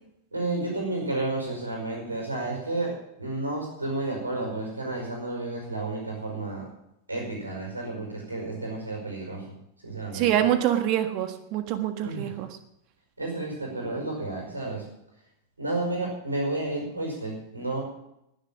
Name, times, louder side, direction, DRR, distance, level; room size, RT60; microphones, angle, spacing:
voice 1, 0.3-6.7 7.1-9.5 9.8-10.3 12.0-12.4 13.2-14.9 15.6-17.8, right 2 dB, 80° right, 0 dB, 5.1 m, -31 dB
voice 2, 10.1-12.5, right 11 dB, 40° right, 9 dB, 1.5 m, -25 dB
19.5 x 7.2 x 7.4 m, 0.81 s
figure-of-eight pair, 90°, 0 cm